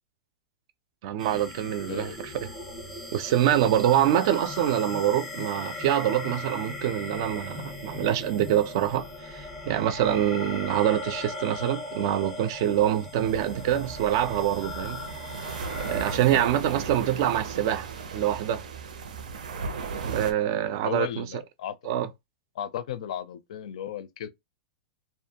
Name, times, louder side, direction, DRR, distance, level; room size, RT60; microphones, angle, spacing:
voice 1, 1.0-2.5 3.1-9.1 9.3-15.0 15.9-18.6 20.0-21.2 21.9-22.1, right 11 dB, 35° right, 0.3 m, -25 dB
sound 1, 1.2-16.2, left 2 dB, 5° left, 0.6 m, -38 dB
sound 2, 13.2-20.3, right 5 dB, 80° right, 0.6 m, -36 dB
voice 2, 20.8-21.7 22.5-24.3, left 10 dB, 55° left, 0.4 m, -35 dB
2.5 x 2.2 x 2.7 m
supercardioid pair, 175°, 4 cm